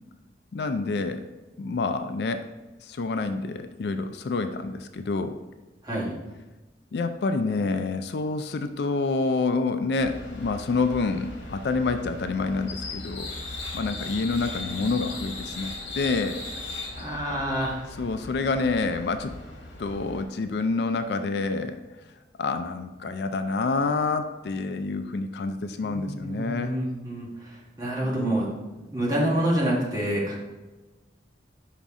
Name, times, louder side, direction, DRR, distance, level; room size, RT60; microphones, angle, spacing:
voice 1, 0.5-1.3 1.6-2.5 2.8-5.4 6.9-13.3 13.7-16.4 18.0-19.4 19.8-21.8 22.4-26.8, left 3 dB, 65° left, 9 dB, 0.4 m, -28 dB
sound 1, 10.0-20.2, left 2 dB, 80° left, 1.1 m, -38 dB
voice 2, 17.0-17.8 25.8-28.5 28.9-30.4, right 1 dB, 20° right, -5 dB, 1.4 m, -27 dB
5.7 x 5.1 x 3.6 m, 1.2 s
head